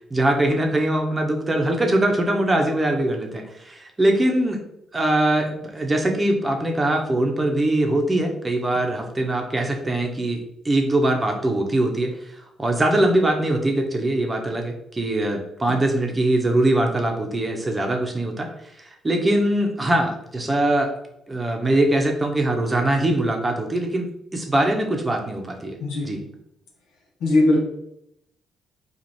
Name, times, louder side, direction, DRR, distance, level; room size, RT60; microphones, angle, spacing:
voice 1, 0.1-4.6 4.9-10.4 10.6-12.1 12.6-18.5 18.8-20.9 21.3-25.8 26.0-26.2, right 1 dB, 20° right, 3 dB, 0.8 m, -22 dB
voice 2, 25.8-26.2 27.2-27.6, left 2 dB, 90° left, -1 dB, 0.8 m, -19 dB
3.1 x 2.4 x 4.0 m, 0.78 s
cardioid pair, 90°, 0 cm